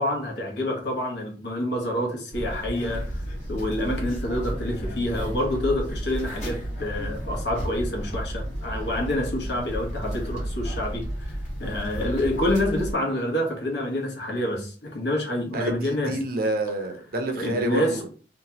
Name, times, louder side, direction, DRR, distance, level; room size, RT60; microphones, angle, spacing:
voice 1, 0.0-3.2 3.5-16.2 17.4-18.1, left 1 dB, 70° left, 1.0 m, -27 dB
sound 1, 2.3-12.9, equal, 45° left, 1.2 m, -32 dB
voice 2, 15.5-18.1, right 1 dB, 55° right, 0.6 m, -28 dB
2.8 x 2.3 x 2.8 m
head